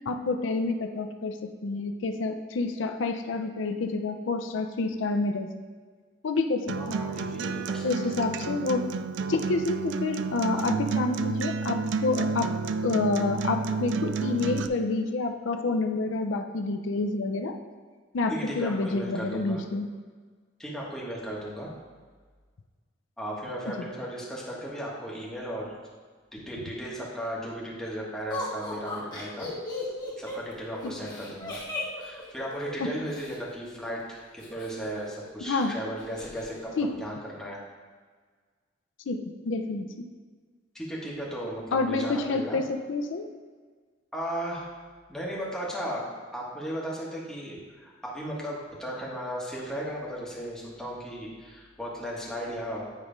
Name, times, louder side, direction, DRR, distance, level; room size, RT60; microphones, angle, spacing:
voice 1, 0.1-5.5 6.2-6.9 7.8-8.9 9.3-12.5 12.8-17.6 18.1-19.9 23.7-23.8 30.8-30.9 32.8-32.9 35.4-35.8 36.8-36.9 39.1-39.9 41.7-43.3, left 3 dB, 85° left, 6 dB, 0.5 m, -28 dB
voice 2, 6.7-8.2 18.3-19.6 20.6-21.7 23.2-25.7 26.3-29.5 30.2-31.6 32.0-37.6 40.7-42.6 44.1-44.7 45.1-46.1 46.3-52.9, equal, 5° left, -5 dB, 1.3 m, -36 dB
Acoustic guitar, 6.7-14.7, right 4 dB, 70° right, 0.3 m, -30 dB
Laughter, 28.3-33.4 34.4-35.3 35.6-35.7 36.0-36.5, left 2 dB, 20° left, 1.5 m, -37 dB
9.1 x 3.1 x 5.0 m, 1.5 s
head